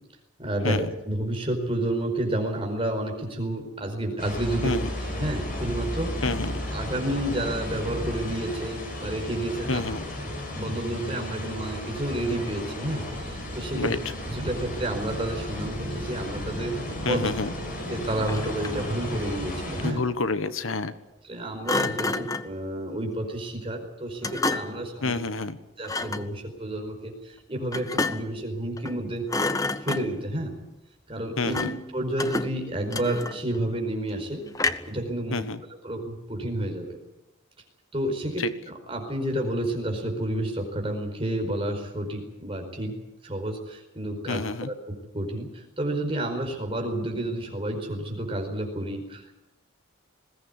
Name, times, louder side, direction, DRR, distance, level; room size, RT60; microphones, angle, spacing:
voice 1, 0.4-4.7 5.0-6.1 6.7-9.9 10.2-13.9 14.3-16.7 17.0-17.3 17.8-20.0 21.2-25.2 25.8-29.2 29.8-30.5 31.1-34.5 34.9-35.4 35.8-37.0 37.9-42.9 43.2-49.3, right 1 dB, 25° right, 3 dB, 4.9 m, -30 dB
sound 1, 4.2-19.9, left 1 dB, 40° left, 6.0 m, -34 dB
voice 2, 6.2-6.6 9.7-10.0 13.7-14.0 17.0-17.5 19.8-20.9 25.0-25.6 31.4-31.7 35.3-35.6 38.4-38.5 44.3-44.7, left 3 dB, 80° left, 12 dB, 1.3 m, -28 dB
Thump thud, 18.1-18.9 21.7-22.6 24.2-24.9 25.8-26.3 27.7-28.4 28.8-29.0 29.3-30.3 31.5-31.9 32.2-33.6 34.6-35.0, left 3 dB, 15° left, 0.8 m, -29 dB
21.0 x 17.0 x 9.8 m, 0.92 s
head